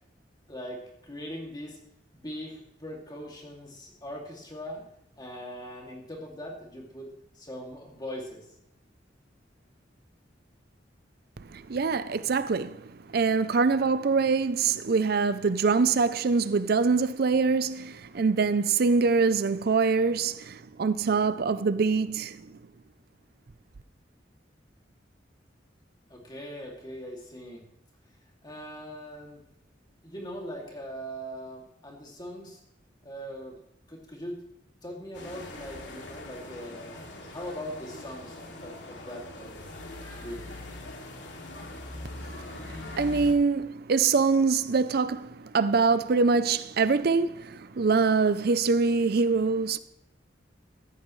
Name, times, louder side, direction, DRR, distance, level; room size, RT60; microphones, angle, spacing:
voice 1, 0.5-1.8 2.1-4.8 5.2-7.1 7.3-8.4 26.1-27.6 28.4-29.4 30.0-32.6 33.0-33.6 33.9-34.4 34.8-39.7 40.2-40.6, equal, 25° left, 2.5 m, -41 dB
voice 2, 11.5-22.5 42.2-49.8, right 4 dB, 60° right, 0.5 m, -24 dB
sound 1, 35.1-43.3, left 2 dB, 85° left, 2.6 m, -42 dB
16.5 x 14.0 x 3.2 m
head